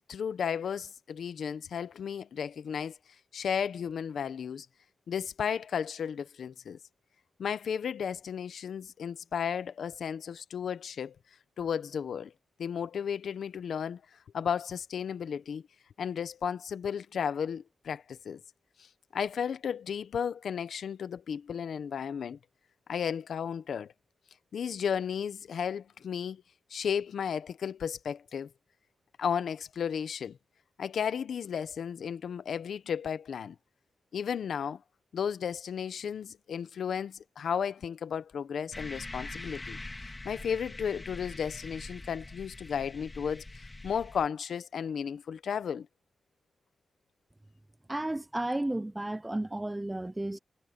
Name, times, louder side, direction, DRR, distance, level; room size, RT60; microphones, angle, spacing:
voice 1, 0.1-2.9 3.3-4.7 5.1-6.8 7.4-11.1 11.6-12.3 12.6-14.0 14.3-15.6 16.0-18.4 19.1-22.4 22.9-23.9 24.5-26.4 26.7-28.5 29.2-30.4 30.8-33.5 34.1-34.8 35.1-43.4 43.8-45.9, left 7 dB, 85° left, 0.9 m, -34 dB
sound 1, 38.7-44.3, left 2 dB, 20° left, 2.5 m, -43 dB
voice 2, 47.9-50.4, right 1 dB, 10° right, 0.4 m, -33 dB
wide cardioid pair, 135°, 0 cm